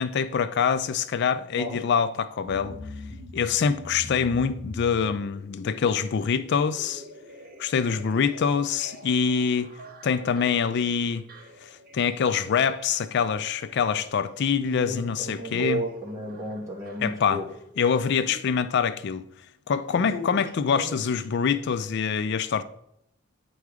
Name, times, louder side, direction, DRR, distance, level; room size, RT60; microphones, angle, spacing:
voice 1, 0.0-2.8 3.3-7.0 7.6-9.7 10.0-11.2 11.6-15.8 17.0-17.4 17.8-19.2 19.7-22.6, left 6 dB, 60° left, 0.4 m, -25 dB
sound 1, 2.5-18.6 18.9-19.0, left 1 dB, 45° right, 1.1 m, -46 dB
voice 2, 14.6-17.5 19.9-20.4 20.7-20.8, right 1 dB, 15° right, 2.0 m, -33 dB
9.2 x 4.7 x 4.9 m
head